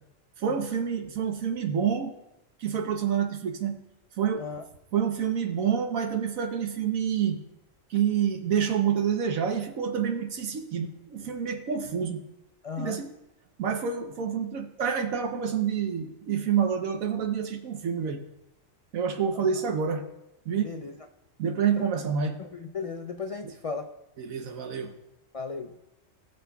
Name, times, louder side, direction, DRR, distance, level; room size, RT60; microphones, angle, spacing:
voice 1, 0.4-2.1 2.6-3.8 4.2-4.4 4.9-7.4 7.9-12.2 12.8-13.1 13.6-18.2 18.9-20.0 20.5-20.7 21.4-22.4 24.2-24.9, right 7 dB, 85° right, 6 dB, 1.3 m, -28 dB
voice 2, 12.6-13.0 20.6-20.9 21.8-22.1 22.4-23.9 25.3-25.8, left 5 dB, 65° left, 5 dB, 0.3 m, -36 dB
19.0 x 6.6 x 2.3 m, 0.88 s
omnidirectional pair, 1.4 m